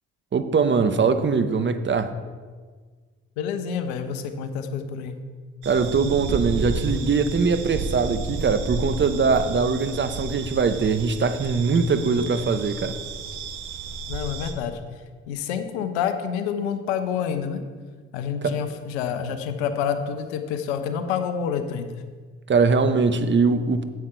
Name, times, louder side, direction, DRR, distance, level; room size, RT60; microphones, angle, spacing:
voice 1, 0.3-2.1 5.6-13.0 18.4-18.6 22.5-23.8, right 4 dB, 35° right, 10 dB, 0.9 m, -22 dB
voice 2, 3.4-5.2 14.1-14.7 15.3-17.6 18.1-21.9, left 7 dB, 85° left, 8 dB, 0.8 m, -28 dB
sound 1, 5.6-14.5, right 4 dB, 65° right, 1.2 m, -32 dB
9.4 x 7.9 x 4.6 m, 1.5 s
hypercardioid pair, 50°, 32 cm